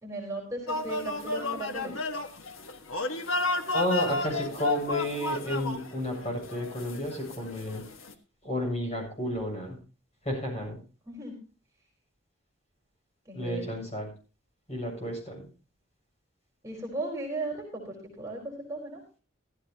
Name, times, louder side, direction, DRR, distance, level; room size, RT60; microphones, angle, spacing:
voice 1, 0.0-2.0 11.0-11.3 13.3-13.8 16.6-19.0, right 2 dB, 15° right, -2 dB, 4.6 m, -36 dB
sound 1, 0.7-8.1, left 2 dB, 85° left, 1.5 m, -32 dB
voice 2, 3.7-7.8 8.4-9.8 10.2-10.8 13.3-14.1 14.7-15.4, equal, 35° left, 0 dB, 7.7 m, -32 dB
15.5 x 14.5 x 2.9 m, 0.35 s
head